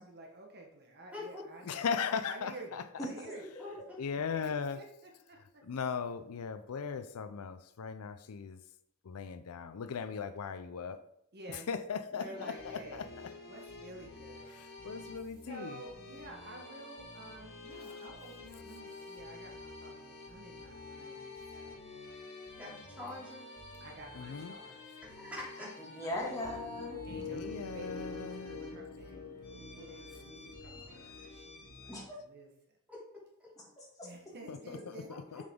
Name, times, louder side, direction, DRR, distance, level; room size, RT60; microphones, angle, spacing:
voice 1, 0.0-3.4 4.4-5.6 11.3-11.7 12.1-15.0 15.4-21.8 23.8-25.1 25.8-26.4 27.0-32.5 34.0-35.4, right 2 dB, 50° right, 1 dB, 1.2 m, -51 dB
voice 2, 1.1-1.5 3.4-3.8 22.5-23.5 25.0-25.7 32.9-33.0, left 2 dB, 5° right, -6 dB, 3.2 m, -44 dB
voice 3, 1.7-2.8 4.0-4.8 5.7-8.6 9.1-11.0 11.7-13.1 14.8-15.7 24.2-24.5 27.1-28.6 34.5-34.6 35.3-35.4, left 6 dB, 80° left, 11 dB, 0.5 m, -38 dB
voice 4, 3.0-3.3 12.3-12.4 25.9-27.0 31.9-32.0 33.6-34.1, left 1 dB, 15° left, -3 dB, 2.2 m, -39 dB
sound 1, 12.3-32.0, left 3 dB, 50° left, 1.9 m, -50 dB
sound 2, 26.4-31.8, left 4 dB, 65° left, 1.2 m, -45 dB
7.1 x 6.8 x 3.7 m, 0.74 s
head